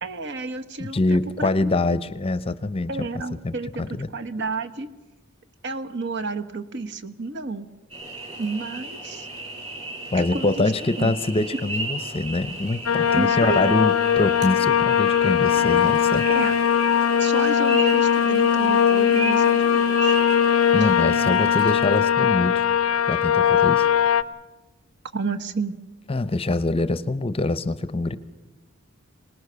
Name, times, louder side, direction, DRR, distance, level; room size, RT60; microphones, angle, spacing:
voice 1, 0.0-1.8 2.9-4.9 5.6-7.7 8.4-9.3 10.2-11.1 13.1-13.7 16.2-16.5 17.2-20.2 20.8-20.9 25.1-25.8, right 3 dB, 55° right, 8 dB, 1.2 m, -31 dB
voice 2, 0.8-3.1 3.4-4.1 10.1-16.2 20.7-22.6 23.1-23.9 26.1-28.2, left 2 dB, 25° left, 15 dB, 0.7 m, -24 dB
sound 1, 7.9-21.8, right 2 dB, 30° right, 7.6 m, -35 dB
sound 2, 12.9-24.2, left 8 dB, 85° left, 0.7 m, -20 dB
Water / Toilet flush, 15.4-23.1, right 2 dB, 85° right, 2.3 m, -45 dB
25.5 x 19.0 x 6.8 m, 1.1 s
head